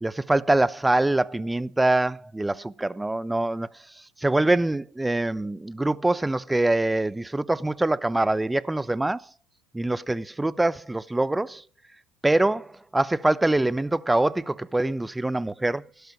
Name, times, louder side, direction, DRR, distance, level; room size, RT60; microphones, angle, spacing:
voice 1, 0.0-3.7 4.0-9.2 9.7-11.6 12.2-15.8, right 2 dB, 10° right, 0.8 m, -24 dB
17.0 x 11.5 x 6.2 m
hypercardioid pair, 70°, 0 cm